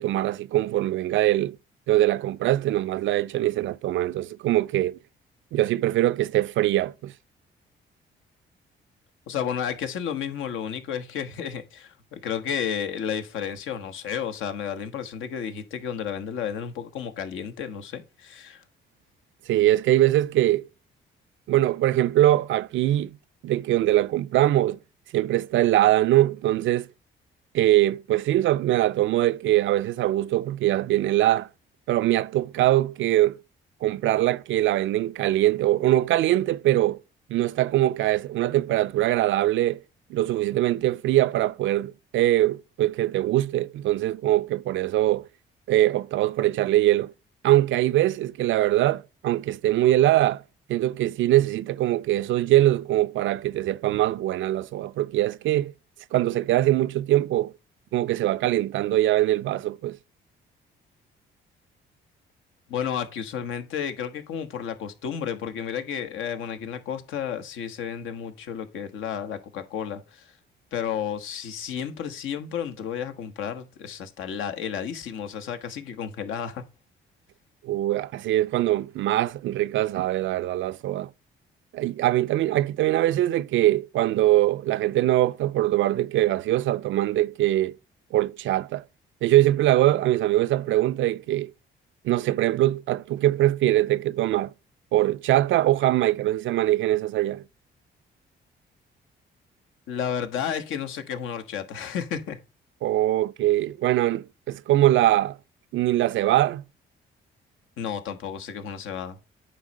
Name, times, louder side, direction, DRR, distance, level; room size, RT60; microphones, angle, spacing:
voice 1, 0.0-1.6 1.9-5.0 5.5-7.1 19.5-20.7 21.5-23.1 23.4-24.8 25.1-26.9 27.5-31.5 31.9-33.4 33.8-37.0 37.3-39.8 40.1-45.3 45.7-47.1 47.4-50.4 50.7-55.7 56.1-57.5 57.9-60.0 77.6-81.1 81.7-87.8 88.1-88.8 89.2-91.5 92.0-94.5 94.9-97.4 102.8-105.4 105.7-106.6, right 14 dB, 75° right, 0.4 m, -22 dB
voice 2, 9.3-18.6 62.7-70.3 70.7-76.6 99.9-102.4 107.8-109.2, left 8 dB, 85° left, 1.3 m, -32 dB
9.1 x 3.2 x 6.3 m
cardioid pair, 90°, 20 cm